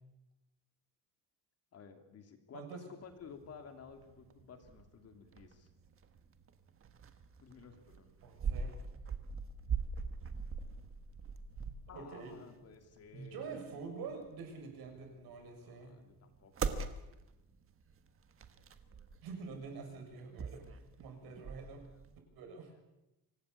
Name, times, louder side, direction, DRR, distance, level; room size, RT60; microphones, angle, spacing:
voice 1, 1.7-5.7 7.4-8.1 11.9-13.6 15.6-16.7, left 6 dB, 40° left, 6 dB, 2.9 m, -54 dB
sound 1, 3.1-22.2, right 5 dB, 35° right, 1.5 m, -43 dB
voice 2, 8.2-8.7 11.9-12.4 13.1-16.0 19.2-21.9 22.3-22.7, right 5 dB, 60° right, 3 dB, 6.9 m, -46 dB
25.5 x 18.5 x 8.5 m, 0.98 s
cardioid pair, 180°, 40 cm